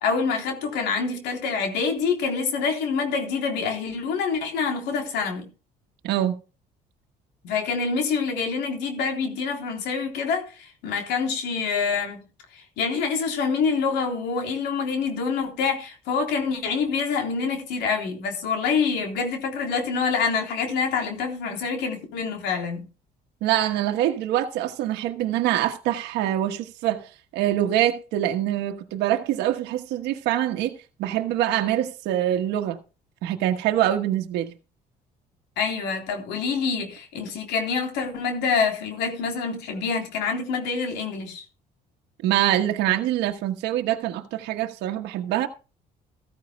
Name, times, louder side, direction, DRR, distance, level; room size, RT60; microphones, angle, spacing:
voice 1, 0.0-5.4 7.4-12.2 12.5-22.8 35.6-41.4, left 5 dB, 85° left, 3.6 m, -26 dB
voice 2, 6.0-6.3 23.4-30.7 31.0-32.8 33.2-34.5 42.2-45.5, right 12 dB, 85° right, 1.3 m, -24 dB
14.5 x 14.0 x 2.3 m
cardioid pair, 110°, 17 cm